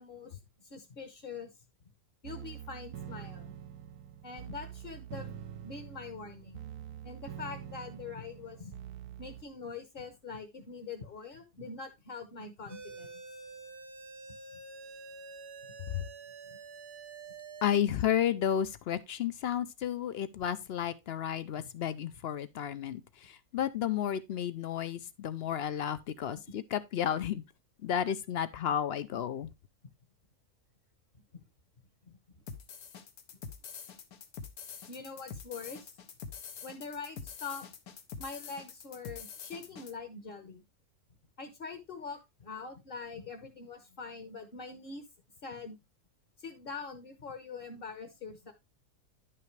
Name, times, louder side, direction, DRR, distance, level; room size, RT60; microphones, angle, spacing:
voice 1, 0.0-1.5 2.2-3.5 4.2-6.7 7.0-8.7 9.2-13.2 16.5-16.6 31.3-31.4 32.0-32.2 34.9-35.9 36.6-37.7 38.2-40.6 41.4-45.0 45.4-45.8 46.4-48.5, left 4 dB, 40° left, 1.1 m, -44 dB
sound 1, 2.2-9.4, right 9 dB, 80° right, 1.2 m, -45 dB
sound 2, 12.7-17.8, right 4 dB, 50° right, 0.8 m, -47 dB
voice 2, 17.6-27.4 27.8-29.5, left 9 dB, 65° left, 0.6 m, -32 dB
sound 3, 32.5-39.9, left 6 dB, 85° left, 1.5 m, -45 dB
10.5 x 5.8 x 3.1 m
omnidirectional pair, 1.6 m